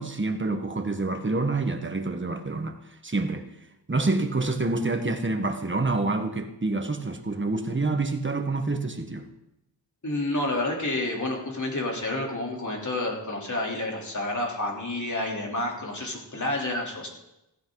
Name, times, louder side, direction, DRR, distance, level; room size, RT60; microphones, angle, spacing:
voice 1, 0.0-2.8 3.0-3.5 3.9-9.3, right 3 dB, 25° right, 1.4 m, -27 dB
voice 2, 10.0-17.1, left 2 dB, 45° left, 3.4 m, -29 dB
16.0 x 15.0 x 4.0 m
wide cardioid pair, 105°, 43 cm